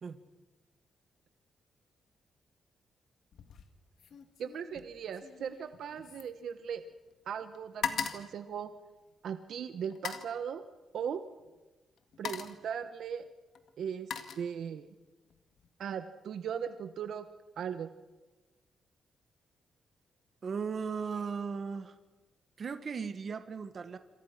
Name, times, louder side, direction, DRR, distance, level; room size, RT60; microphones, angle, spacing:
sound 1, 3.3-3.7 4.0-7.1 7.4-9.3 9.9-10.4 11.4-11.6 12.0-12.7 13.5-14.9 15.3-15.7, left 7 dB, 60° left, 1.9 m, -41 dB
voice 1, 4.4-6.8 7.3-8.7 9.2-10.6 10.9-11.2 12.2-13.3 13.8-14.9 15.8-17.3 17.6-17.9, right 8 dB, 65° right, 10 dB, 1.1 m, -38 dB
voice 2, 20.4-21.9 22.6-24.0, right 5 dB, 35° right, 10 dB, 1.4 m, -37 dB
27.0 x 27.0 x 5.9 m, 1.2 s
wide cardioid pair, 175°, 0 cm